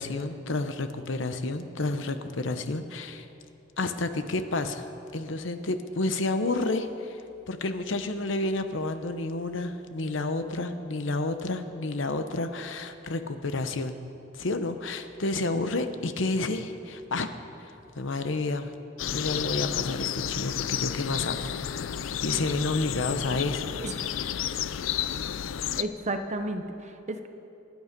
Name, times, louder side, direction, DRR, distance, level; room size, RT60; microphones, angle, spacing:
voice 1, 0.0-3.3 3.8-4.9 5.1-7.2 7.5-13.9 14.3-18.7 19.1-21.5 22.2-23.7, left 2 dB, 70° left, 9 dB, 0.9 m, -30 dB
sound 1, 19.0-25.8, left 9 dB, 85° left, 0.5 m, -31 dB
voice 2, 25.8-27.3, right 2 dB, 35° right, 7 dB, 0.9 m, -33 dB
25.5 x 9.4 x 5.2 m, 2.8 s
head